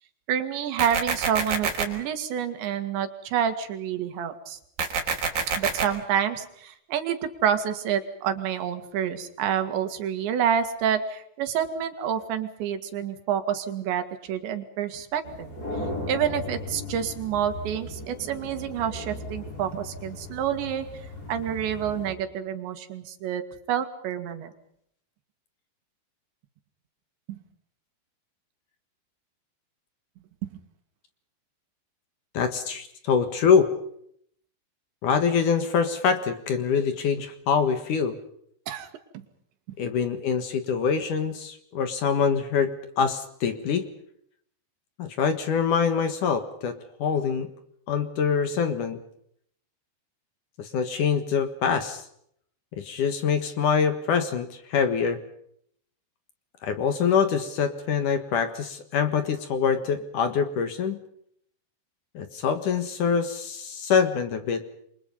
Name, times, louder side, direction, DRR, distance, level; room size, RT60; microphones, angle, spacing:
voice 1, 0.3-4.6 5.6-15.5 16.1-20.9 21.3-23.4 23.7-24.5 27.3-27.4 30.4-30.5 38.7-38.9, right 9 dB, 90° right, 8 dB, 4.3 m, -28 dB
sound 1, 0.8-1.8 4.8-5.8, right 5 dB, 55° right, 5.1 m, -26 dB
sound 2, 15.2-22.1, left 1 dB, 20° left, 5.7 m, -37 dB
voice 2, 32.3-33.7 35.0-38.2 39.8-43.9 45.0-47.5 47.9-49.0 50.6-52.0 52.8-55.2 56.6-61.0 62.1-64.6, left 6 dB, 60° left, 9 dB, 2.6 m, -25 dB
28.5 x 24.5 x 5.5 m, 0.69 s
omnidirectional pair, 5.0 m